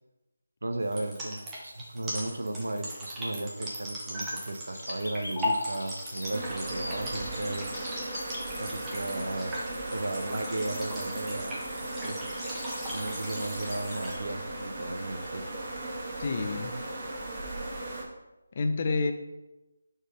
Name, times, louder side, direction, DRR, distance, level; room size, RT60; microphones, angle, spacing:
voice 1, 0.6-8.1 8.6-9.6 9.9-12.2 12.9-15.4, right 2 dB, 75° right, 6 dB, 0.7 m, -35 dB
sound 1, 0.8-14.2, equal, 10° right, 1.2 m, -38 dB
sound 2, 4.7-17.0, left 1 dB, 85° left, 1.2 m, -47 dB
sound 3, 6.3-18.0, right 2 dB, 35° right, 1.6 m, -37 dB
voice 2, 16.2-16.7 18.5-19.1, left 3 dB, 40° left, 6 dB, 0.6 m, -28 dB
5.0 x 4.4 x 5.0 m, 1.0 s
figure-of-eight pair, 160°, 0 cm